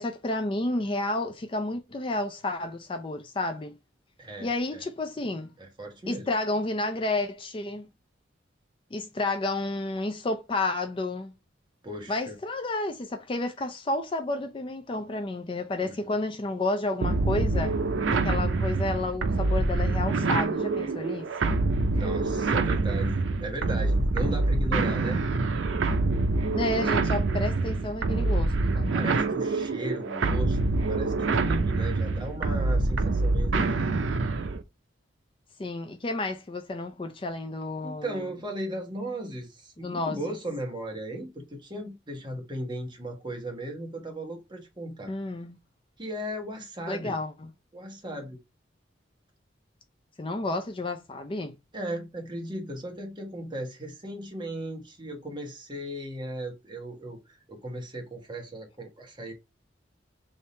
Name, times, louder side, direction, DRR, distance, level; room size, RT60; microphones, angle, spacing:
voice 1, 0.0-3.7 4.4-5.5 6.1-7.9 8.9-11.3 12.1-17.7 18.1-21.6 26.5-29.0 35.6-38.3 39.8-40.2 45.1-45.6 46.9-47.3 50.2-51.5, left 2 dB, 25° left, 0.4 m, -31 dB
voice 2, 4.2-4.8 5.6-6.3 11.8-12.4 15.8-15.9 21.9-25.2 28.9-33.9 37.8-45.1 46.0-47.2 47.7-48.4 51.7-59.3, right 1 dB, 25° right, 1.2 m, -36 dB
sound 1, 17.0-34.6, right 3 dB, 85° right, 0.6 m, -26 dB
3.6 x 2.7 x 4.1 m
head